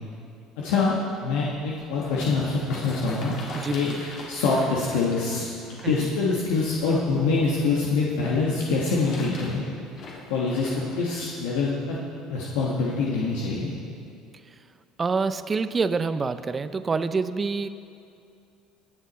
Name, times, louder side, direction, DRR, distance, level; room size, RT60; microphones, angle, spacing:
voice 1, 0.6-3.3 3.7-9.6 10.3-12.0 12.3-13.7, left 4 dB, 80° left, -4 dB, 1.4 m, -25 dB
sound 1, 1.6-7.6 8.5-11.0 11.7-11.8, left 2 dB, 60° left, 2.8 m, -41 dB
voice 2, 3.5-4.0 5.8-6.0 15.0-17.7, right 4 dB, 30° right, 12 dB, 0.5 m, -26 dB
20.5 x 7.1 x 4.2 m, 2.4 s
supercardioid pair, 85°, 0 cm